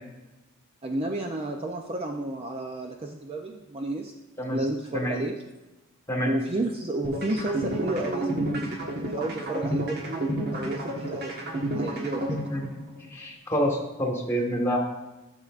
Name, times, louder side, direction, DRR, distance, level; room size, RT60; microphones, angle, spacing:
voice 1, 0.8-4.1 4.5-5.3 6.2-11.3 11.7-12.4, right 2 dB, 25° right, 3 dB, 0.5 m, -31 dB
sound 1, 7.0-13.1, right 1 dB, 50° right, 1.3 m, -30 dB
voice 2, 13.1-14.8, equal, 15° left, -1 dB, 1.5 m, -27 dB
12.5 x 6.5 x 2.5 m, 1.1 s
head